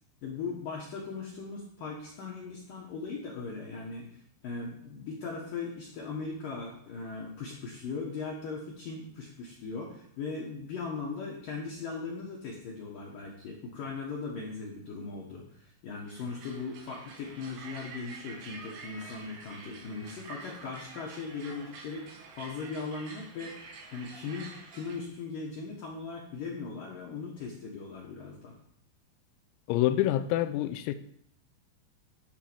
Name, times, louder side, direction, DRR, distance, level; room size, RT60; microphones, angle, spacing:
voice 1, 0.2-28.5, left 4 dB, 60° left, 2.4 m, -39 dB
sound 1, 16.1-25.0, right 3 dB, 65° right, 3.4 m, -48 dB
voice 2, 29.7-30.9, left 13 dB, 90° left, 3.5 m, -27 dB
13.0 x 4.8 x 7.2 m
omnidirectional pair, 6.0 m